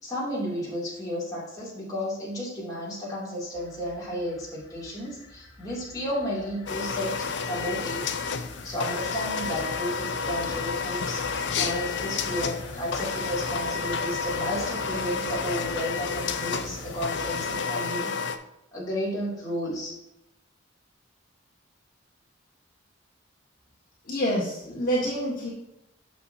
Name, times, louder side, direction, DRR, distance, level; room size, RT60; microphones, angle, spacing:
voice 1, 0.0-18.1 18.7-20.0, equal, 20° left, -7 dB, 2.4 m, -33 dB
sound 1, 3.5-17.6, left 2 dB, 80° left, 1.6 m, -44 dB
sound 2, 6.7-18.4, left 5 dB, 60° left, 0.5 m, -30 dB
voice 2, 24.1-25.5, equal, 45° left, -6 dB, 1.6 m, -27 dB
9.9 x 6.3 x 2.7 m, 0.88 s
head